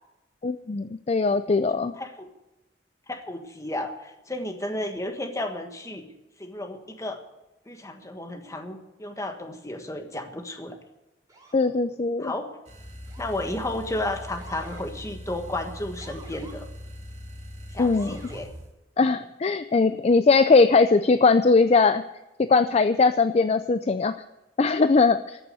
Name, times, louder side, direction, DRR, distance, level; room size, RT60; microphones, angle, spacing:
voice 1, 0.4-1.9 11.5-12.3 17.8-18.2 19.0-22.0 22.4-24.1 24.6-25.4, left 4 dB, 35° left, 11 dB, 0.4 m, -20 dB
voice 2, 1.7-2.3 3.1-6.1 6.4-7.2 7.7-10.8 12.2-12.5 13.2-16.7 17.7-18.5, left 1 dB, 20° left, 5 dB, 1.4 m, -33 dB
Motor vehicle (road) / Siren, 11.3-11.7 13.1-13.6 14.4-14.9 16.0-16.6 17.9-18.4, right 3 dB, 20° right, 2.9 m, -48 dB
sound 1, 12.6-18.7, left 1 dB, 40° right, 4.3 m, -41 dB
14.0 x 6.9 x 9.4 m, 0.99 s
head